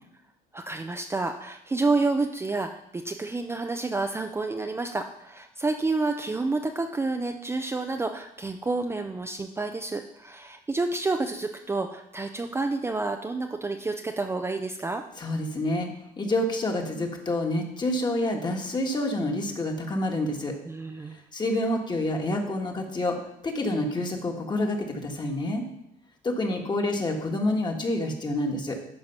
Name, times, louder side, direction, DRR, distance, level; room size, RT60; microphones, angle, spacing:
voice 1, 0.5-15.0 20.6-21.2, right 3 dB, 15° right, 5 dB, 0.5 m, -29 dB
voice 2, 15.2-15.9 16.2-20.5 21.3-23.2 23.4-25.6 26.2-28.8, left 1 dB, 25° left, 2 dB, 1.6 m, -28 dB
11.5 x 4.6 x 5.5 m, 0.80 s
cardioid pair, 110°, 17 cm